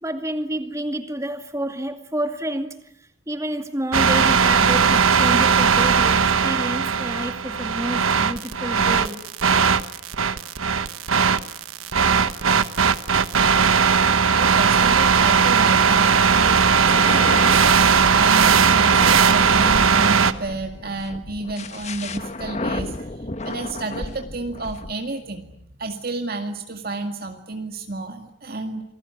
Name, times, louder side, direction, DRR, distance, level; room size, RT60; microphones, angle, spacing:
voice 1, 0.0-2.8 3.3-9.2, right 1 dB, 15° right, 7 dB, 2.3 m, -29 dB
sound 1, 3.9-20.3, right 6 dB, 80° right, 1.2 m, -18 dB
voice 2, 14.3-25.5 25.8-28.8, right 3 dB, 45° right, 4 dB, 2.1 m, -31 dB
sound 2, 16.9-24.9, left 2 dB, 35° left, 1.3 m, -33 dB
28.0 x 20.0 x 9.7 m, 0.74 s
head